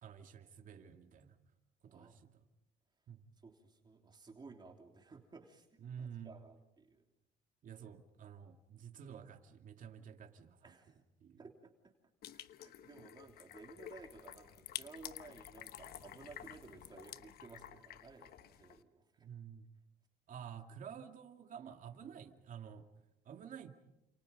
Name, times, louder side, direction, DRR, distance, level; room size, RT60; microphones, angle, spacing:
voice 1, 0.0-1.4 1.8-2.4 3.1-3.2 5.8-6.4 7.6-10.7 11.2-11.4 13.0-13.1 19.2-19.7 20.3-22.9 23.2-23.8, right 8 dB, 50° right, 5 dB, 2.3 m, -51 dB
voice 2, 1.9-2.3 3.4-5.7 6.0-7.0 10.6-11.0 11.4-11.9 12.3-19.3, right 4 dB, 25° right, 2 dB, 3.2 m, -56 dB
sound 1, 12.2-18.8, left 12 dB, 65° left, 1.1 m, -51 dB
29.5 x 28.0 x 5.3 m, 0.89 s
cardioid pair, 110°, 17 cm